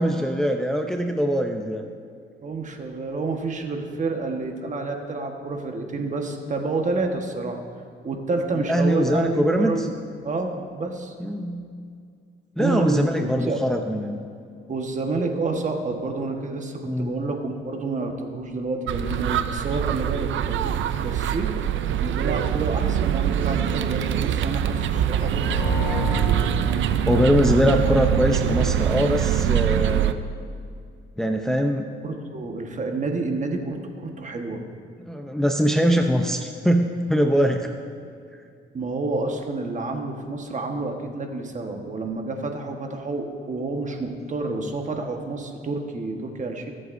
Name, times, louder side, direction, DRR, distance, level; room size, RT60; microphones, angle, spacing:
voice 1, 0.0-1.8 8.7-9.9 11.2-11.7 12.6-14.2 16.8-17.1 27.0-30.3 31.2-31.9 35.0-37.7, equal, ahead, 3 dB, 0.6 m, -22 dB
voice 2, 2.4-7.6 8.0-9.9 10.2-11.1 12.6-13.7 14.7-21.5 22.0-25.5 32.0-34.6 38.7-46.7, right 3 dB, 40° right, 3 dB, 1.3 m, -29 dB
sound 1, 18.9-30.1, right 10 dB, 75° right, 0.5 m, -23 dB
sound 2, 25.3-28.1, left 1 dB, 60° left, 1.3 m, -31 dB
22.0 x 7.9 x 2.6 m, 2.3 s
cardioid pair, 90°, 20 cm